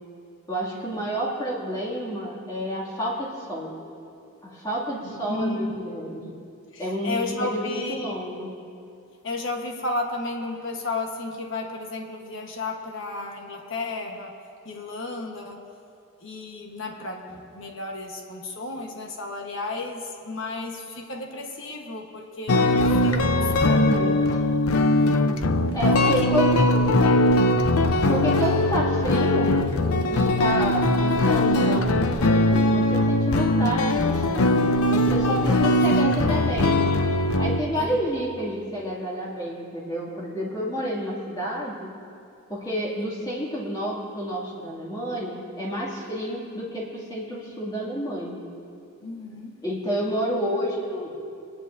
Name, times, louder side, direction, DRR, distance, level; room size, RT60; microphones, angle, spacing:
voice 1, 0.5-3.7 4.4-6.2 6.8-8.5 23.0-24.2 25.7-26.6 28.1-29.6 30.1-36.8 37.4-41.9 42.5-48.4 49.6-51.1, equal, 20° left, -5 dB, 2.4 m, -29 dB
voice 2, 5.0-5.8 6.1-6.3 6.7-8.1 9.2-14.4 14.6-15.7 16.2-24.1 24.8-25.2 25.9-26.6 27.0-28.0 37.7-38.0 49.0-49.5, left 2 dB, 60° left, 2 dB, 1.2 m, -33 dB
sound 1, 22.5-37.6, left 1 dB, 90° left, 0.6 m, -21 dB
24.5 x 10.5 x 2.6 m, 2.6 s
head